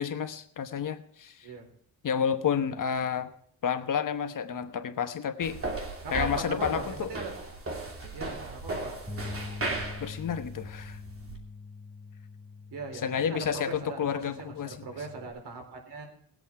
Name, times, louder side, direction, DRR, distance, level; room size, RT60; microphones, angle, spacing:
voice 1, 0.0-1.5 2.0-3.3 3.6-5.6 6.1-7.1 10.0-11.0 13.0-14.7, left 7 dB, 50° left, 9 dB, 1.1 m, -30 dB
sound 1, 5.4-11.4, right 2 dB, 35° right, 2.8 m, -36 dB
voice 2, 6.0-7.3 8.1-8.9 12.7-16.1, right 3 dB, 75° right, 4 dB, 4.1 m, -39 dB
Bass guitar, 9.1-15.3, left 4 dB, 5° left, 7.4 m, -44 dB
19.5 x 8.2 x 4.5 m, 0.65 s
cardioid pair, 120°, 41 cm